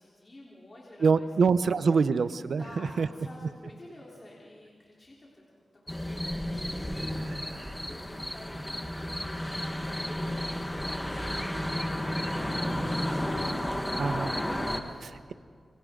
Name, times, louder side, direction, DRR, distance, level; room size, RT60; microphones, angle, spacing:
voice 1, 0.0-1.3 1.5-1.9 2.6-12.0 12.3-15.3, left 1 dB, 30° left, -5 dB, 3.7 m, -52 dB
voice 2, 1.0-3.1 7.1-7.4 14.0-14.3 15.0-15.3, right 5 dB, 70° right, 13 dB, 0.7 m, -26 dB
sound 1, 5.9-14.8, left 1 dB, 10° left, 1.5 m, -32 dB
28.0 x 25.0 x 3.8 m, 2.1 s
wide cardioid pair, 115°, 0 cm